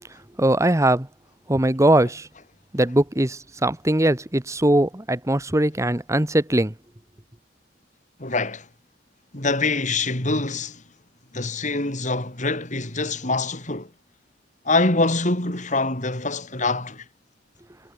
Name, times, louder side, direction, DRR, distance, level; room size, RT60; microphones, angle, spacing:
voice 1, 0.4-1.1 1.5-2.3 2.7-6.7, right 1 dB, 15° right, 1.3 m, -20 dB
voice 2, 8.2-8.7 9.3-10.8 11.3-13.9 14.6-17.0, left 3 dB, 45° left, 4.9 m, -24 dB
head